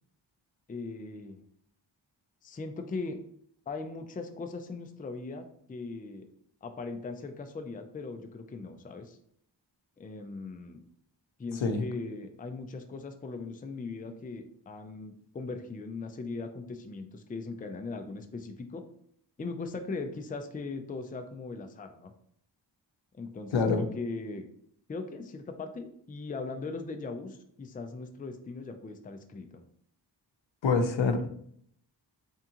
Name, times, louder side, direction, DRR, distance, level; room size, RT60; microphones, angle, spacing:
voice 1, 0.7-1.4 2.4-3.2 3.7-6.3 6.6-9.2 10.0-10.8 11.4-18.8 19.4-22.1 23.1-24.5 24.9-29.6, left 3 dB, 20° left, 6 dB, 0.4 m, -39 dB
voice 2, 11.5-11.9 23.5-23.8 30.6-31.3, left 4 dB, 85° left, 6 dB, 0.7 m, -26 dB
3.6 x 3.6 x 2.9 m, 0.66 s
wide cardioid pair, 65°, 45 cm